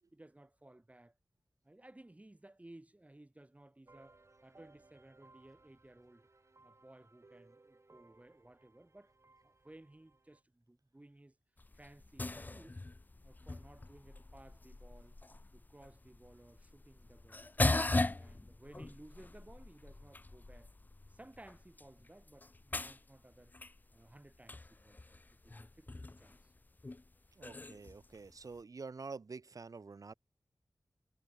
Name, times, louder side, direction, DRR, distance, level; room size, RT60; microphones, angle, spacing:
voice 1, 0.1-1.1 1.6-6.3 6.6-9.1 9.4-11.4 11.7-12.8 13.2-15.2 15.5-17.5 18.0-20.7 21.1-23.5 23.9-26.5, right 1 dB, 20° right, 2.1 m, -58 dB
sound 1, 3.9-10.4, right 3 dB, 45° right, 7.9 m, -64 dB
sound 2, 11.6-28.6, left 2 dB, 30° left, 0.5 m, -40 dB
voice 2, 27.4-30.1, right 4 dB, 65° right, 1.1 m, -47 dB
wide cardioid pair, 65°, 6 cm